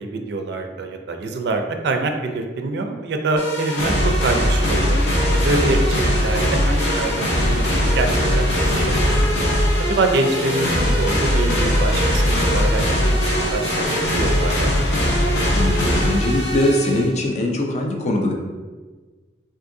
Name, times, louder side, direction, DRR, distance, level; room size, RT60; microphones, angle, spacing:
voice 1, 0.0-5.0 5.3-9.3 9.8-14.7, right 3 dB, 65° right, 4 dB, 0.4 m, -25 dB
sound 1, 3.4-17.1, equal, 70° left, 0.8 m, -20 dB
voice 2, 15.5-18.3, left 1 dB, 40° left, 1 dB, 0.4 m, -21 dB
3.6 x 2.6 x 2.5 m, 1.3 s
head